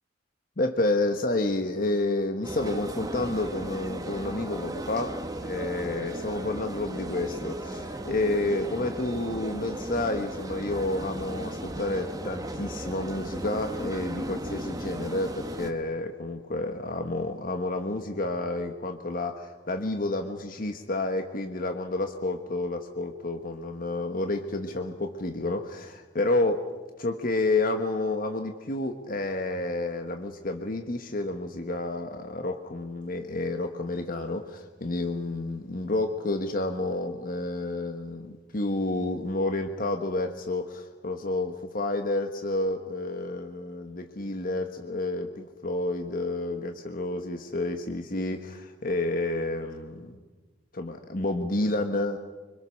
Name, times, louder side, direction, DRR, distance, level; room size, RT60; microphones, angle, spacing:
voice 1, 0.6-5.2 5.4-26.6 27.0-50.2 50.7-52.2, left 2 dB, 50° left, 6 dB, 1.3 m, -30 dB
sound 1, 2.4-15.7, right 1 dB, 20° right, 1.6 m, -36 dB
25.5 x 25.5 x 6.5 m, 1.3 s
head